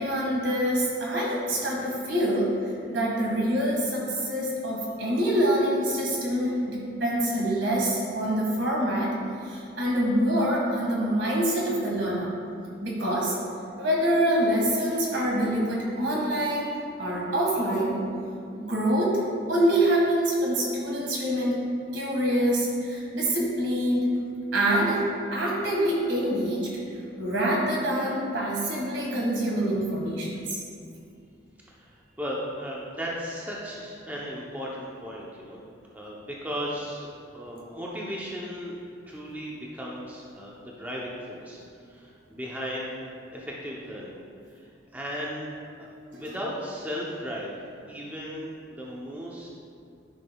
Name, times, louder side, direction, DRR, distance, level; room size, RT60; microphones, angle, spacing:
voice 1, 0.0-2.5 2.9-9.1 9.4-12.3 12.8-13.4 13.8-16.7 17.0-18.0 18.5-19.2 19.5-21.5 21.9-24.1 24.5-25.0 25.3-26.7 27.2-30.6 46.1-46.2, right 1 dB, 80° right, -4 dB, 1.7 m, -25 dB
voice 2, 31.7-35.6 35.9-37.1 37.3-38.7 39.1-41.6 41.9-44.2 44.5-45.5 45.8-47.6 47.9-49.5, equal, 10° right, -4 dB, 0.7 m, -36 dB
11.0 x 5.9 x 2.3 m, 2.4 s
head